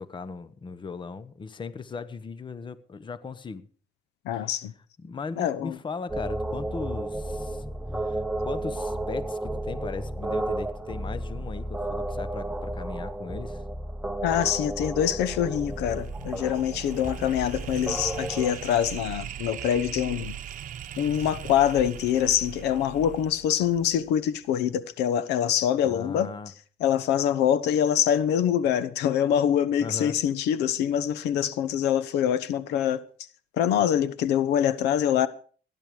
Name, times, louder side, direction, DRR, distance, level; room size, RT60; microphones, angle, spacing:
voice 1, 0.0-3.7 4.3-4.5 5.0-7.6 8.0-13.6 25.8-26.5 29.8-30.2, left 5 dB, 30° left, 1.0 m, -38 dB
voice 2, 4.2-4.7 5.4-5.8 14.2-20.3 21.0-26.3 26.8-33.0 33.5-35.3, left 9 dB, 80° left, 1.0 m, -25 dB
sound 1, 6.1-18.5, right 1 dB, 5° right, 0.9 m, -32 dB
sound 2, 15.1-24.2, right 10 dB, 50° right, 0.9 m, -40 dB
16.0 x 11.0 x 5.0 m
cardioid pair, 110°, 17 cm